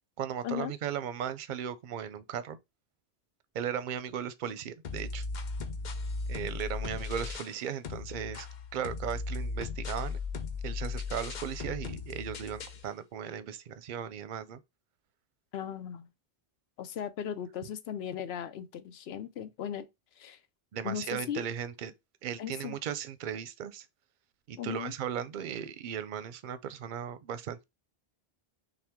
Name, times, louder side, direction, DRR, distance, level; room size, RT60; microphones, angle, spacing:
voice 1, 0.2-2.6 3.5-5.2 6.3-8.5 8.7-10.2 10.6-14.6 20.7-21.9 22.2-23.9 24.5-27.6, right 9 dB, 60° right, 0.6 m, -37 dB
sound 1, 4.8-7.6 7.8-12.8, left 4 dB, 50° left, 0.7 m, -37 dB
voice 2, 15.5-16.1 16.8-19.9 20.2-20.4 20.8-21.5 22.4-22.8 24.6-24.9, left 9 dB, 80° left, 0.8 m, -37 dB
5.7 x 2.2 x 3.5 m
omnidirectional pair, 1.1 m